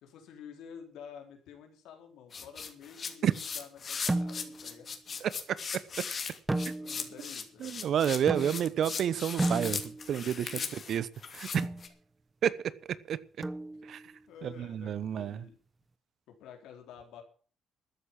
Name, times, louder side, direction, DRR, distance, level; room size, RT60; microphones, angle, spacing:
voice 1, 0.0-4.9 6.8-7.8 10.4-10.8 14.3-15.6 16.3-17.2, left 7 dB, 80° left, 4.1 m, -50 dB
sound 1, 2.3-11.9, left 5 dB, 45° left, 2.8 m, -38 dB
sound 2, 4.1-4.7 6.5-7.2 8.3-8.9 9.4-10.2 11.5-11.9 13.4-14.0, right 2 dB, 20° right, 1.1 m, -33 dB
voice 2, 5.2-5.6 6.6-6.7 7.6-11.1 11.3-11.7 12.4-13.2 13.8-14.0 14.4-15.5, right 9 dB, 65° right, 1.0 m, -30 dB
13.5 x 9.6 x 7.4 m
supercardioid pair, 70°, 0 cm